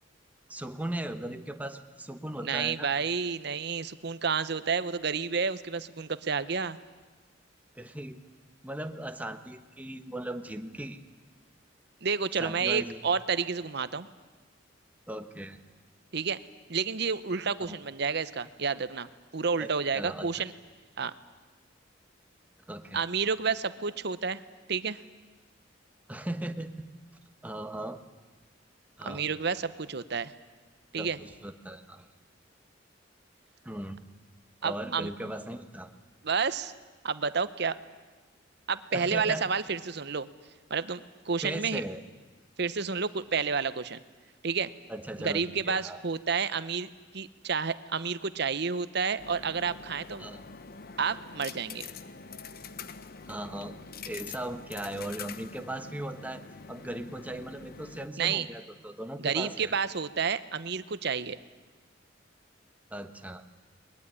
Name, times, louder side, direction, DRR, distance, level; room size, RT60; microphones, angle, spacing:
voice 1, 0.5-2.9 7.7-8.2 8.6-11.0 12.4-13.0 15.1-15.6 17.7-17.8 19.6-20.3 22.7-23.0 26.1-26.7 27.4-28.0 29.0-29.3 31.0-32.1 33.6-34.0 34.6-35.9 38.9-39.5 41.4-42.0 44.9-46.0 50.2-50.5 53.3-53.7 54.0-56.4 56.7-59.8 62.9-63.4, right 1 dB, 10° right, 7 dB, 1.2 m, -38 dB
voice 2, 2.4-6.8 12.0-14.1 16.1-16.4 16.7-19.1 19.3-20.5 21.0-21.1 22.9-24.4 24.7-25.0 29.0-30.3 30.9-31.2 34.6-35.1 36.2-36.7 37.0-37.8 38.7-40.3 40.7-41.8 42.6-44.0 44.4-44.7 45.2-46.9 47.1-50.2 51.0-51.9 58.2-58.5 59.2-61.4, right 5 dB, 65° right, 14 dB, 0.9 m, -30 dB
sound 1, 49.2-58.1, left 5 dB, 55° left, 0.9 m, -45 dB
21.0 x 21.0 x 9.8 m, 1.3 s
head